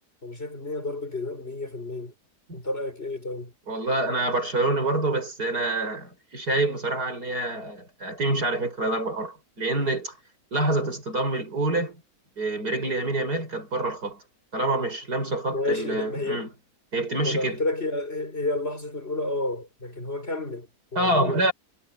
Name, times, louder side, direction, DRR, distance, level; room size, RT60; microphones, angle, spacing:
voice 1, 0.2-2.1 2.5-3.5 15.5-16.5 17.2-21.5, left 2 dB, 40° left, 5.2 m, -30 dB
voice 2, 3.7-10.2 10.5-12.0 12.4-14.2 14.5-16.5 16.9-17.6 21.0-21.5, right 2 dB, 85° right, 7.8 m, -26 dB
omnidirectional pair, 1.6 m